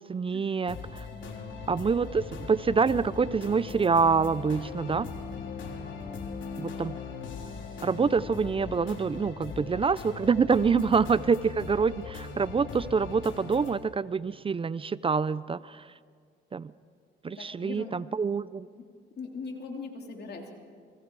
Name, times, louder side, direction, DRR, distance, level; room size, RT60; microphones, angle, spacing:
voice 1, 0.0-1.1 1.7-5.1 6.6-7.0 7.8-15.9 16.5-16.7 17.2-18.7, right 5 dB, 25° right, 18 dB, 0.5 m, -26 dB
sound 1, 0.7-13.8, left 4 dB, 70° left, 3.6 m, -41 dB
voice 2, 1.1-1.7 10.8-10.9 17.3-17.9 18.8-18.9 19.2-20.6, left 4 dB, 55° left, 2 dB, 3.3 m, -40 dB
Bowed string instrument, 2.2-9.9, left 5 dB, 35° left, 1.0 m, -44 dB
30.0 x 23.5 x 4.8 m, 2.1 s
cardioid pair, 90°, 20 cm